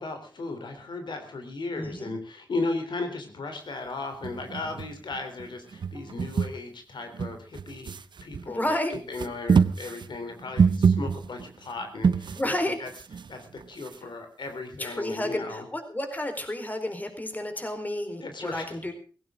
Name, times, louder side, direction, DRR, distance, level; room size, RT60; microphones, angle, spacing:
voice 1, 0.0-7.9 8.2-12.4 12.8-12.9 13.3-15.6 18.2-18.8, left 3 dB, 80° left, 6 dB, 3.4 m, -36 dB
voice 2, 1.8-2.1 8.5-8.9 12.3-12.8 14.8-18.9, left 1 dB, 20° left, 7 dB, 4.2 m, -31 dB
sound 1, 4.2-5.5 5.7-6.6 7.1-8.5 8.9-12.5 12.9-14.1, right 6 dB, 75° right, 0.7 m, -26 dB
17.5 x 16.5 x 3.7 m, 0.38 s
wide cardioid pair, 70°, 8 cm